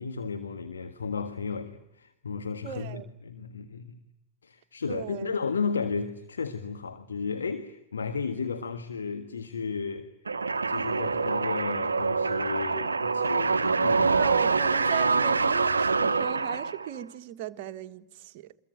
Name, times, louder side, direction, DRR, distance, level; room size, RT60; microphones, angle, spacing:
voice 1, 0.0-4.0 4.4-10.1 10.7-14.3, left 5 dB, 70° left, 1.6 m, -34 dB
voice 2, 2.6-3.1 4.9-5.3 14.1-18.5, right 11 dB, 45° right, 1.4 m, -37 dB
sound 1, 10.3-17.0, right 4 dB, 75° right, 1.0 m, -25 dB
24.5 x 22.0 x 9.2 m
figure-of-eight pair, 90°, 0 cm